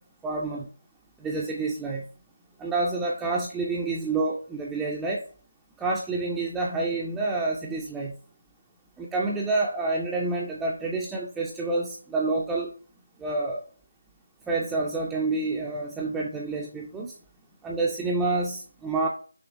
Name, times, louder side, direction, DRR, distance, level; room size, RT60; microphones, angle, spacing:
voice 1, 0.2-0.7 1.2-2.0 2.6-5.2 5.8-8.1 9.0-12.7 13.2-13.6 14.5-17.1 17.6-19.1, right 3 dB, 5° right, -3 dB, 0.4 m, -28 dB
5.9 x 2.9 x 2.5 m, 0.41 s
figure-of-eight pair, 165°, 0 cm